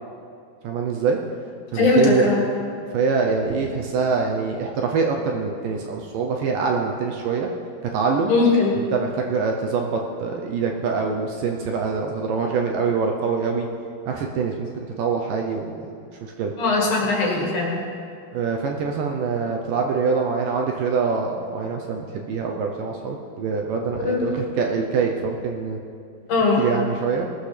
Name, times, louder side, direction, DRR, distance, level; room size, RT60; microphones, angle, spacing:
voice 1, 0.6-1.2 1.7-2.4 2.9-7.5 7.9-8.3 8.9-13.7 14.1-15.8 16.2-16.5 18.3-25.8 26.6-27.3, right 5 dB, 75° right, 1 dB, 2.1 m, -24 dB
voice 2, 1.7-2.4 8.3-8.8 16.6-17.8 24.0-24.3 26.3-26.6, left 3 dB, 55° left, -2 dB, 3.1 m, -20 dB
19.5 x 13.0 x 3.4 m, 2.3 s
omnidirectional pair, 4.7 m